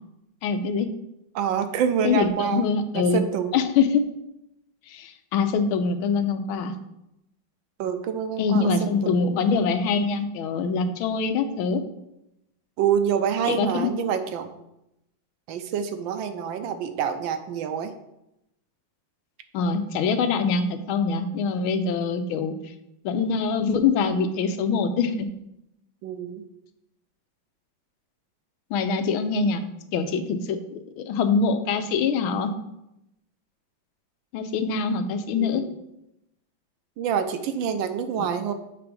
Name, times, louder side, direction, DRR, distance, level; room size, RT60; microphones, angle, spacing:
voice 1, 0.4-0.9 2.0-3.2 3.5-4.0 4.9-6.7 8.4-11.8 13.5-13.9 19.5-22.5 23.0-25.3 28.7-29.6 29.9-30.6 31.0-32.5 34.3-35.6 38.2-38.3, left 5 dB, 85° left, 9 dB, 1.5 m, -24 dB
voice 2, 1.3-3.6 7.8-9.1 12.8-14.5 15.5-17.9 26.0-26.4 35.4-35.7 37.0-38.5, right 7 dB, 75° right, 8 dB, 1.3 m, -27 dB
7.5 x 3.5 x 5.1 m, 0.85 s
omnidirectional pair, 2.2 m